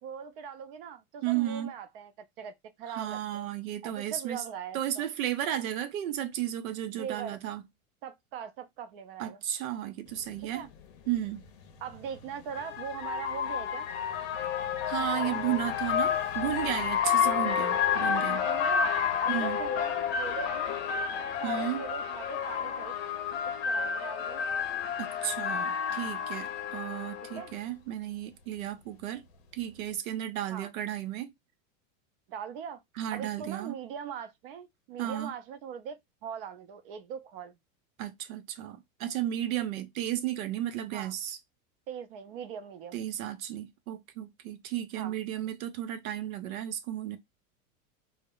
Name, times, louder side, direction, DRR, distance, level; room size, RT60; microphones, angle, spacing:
voice 1, 0.0-2.1 2.4-3.5 3.8-5.1 7.0-7.4 8.0-9.4 10.5-10.7 11.8-13.9 15.0-15.4 17.2-17.6 18.4-18.9 19.2-20.8 21.4-22.9 23.4-24.4 27.4-27.5 30.5-30.7 32.3-32.8 33.1-37.6 40.9-41.1 41.9-43.0 45.0-45.1, right 8 dB, 45° right, 0.5 m, -41 dB
voice 2, 1.2-1.7 2.9-4.4 4.7-7.6 9.2-10.7 11.1-11.4 14.9-18.5 19.3-19.6 21.4-21.8 25.0-29.2 29.5-31.3 33.0-33.8 35.0-35.3 38.0-41.4 42.9-47.2, right 12 dB, 85° right, 0.7 m, -34 dB
sound 1, 10.4-10.5 11.9-27.5, left 7 dB, 50° left, 0.6 m, -30 dB
2.1 x 2.0 x 3.6 m
supercardioid pair, 165°, 40 cm